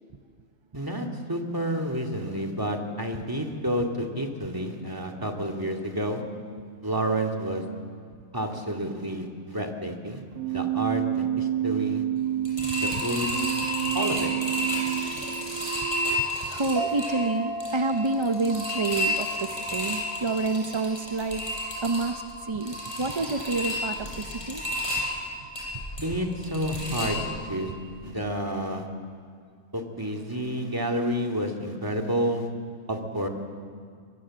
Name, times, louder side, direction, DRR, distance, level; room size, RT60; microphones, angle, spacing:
voice 1, 0.7-6.2 6.8-7.6 8.3-12.0 12.7-13.3 13.9-14.3 26.0-27.2 27.5-27.7 28.0-28.9 29.7-32.5 32.9-33.3, equal, 15° right, 4 dB, 2.2 m, -30 dB
Keyboard (musical), 10.3-16.3, right 12 dB, 90° right, 1.5 m, -29 dB
sound 1, 12.4-27.6 28.0-28.1 28.4-28.5, left 1 dB, 20° left, 6.8 m, -32 dB
voice 2, 12.6-13.0 16.4-21.4 21.8-24.6, right 3 dB, 40° right, 7 dB, 0.4 m, -28 dB
sound 2, 16.8-23.8, right 1 dB, 50° left, 4.2 m, -38 dB
23.0 x 22.5 x 7.6 m, 2.1 s
omnidirectional pair, 1.5 m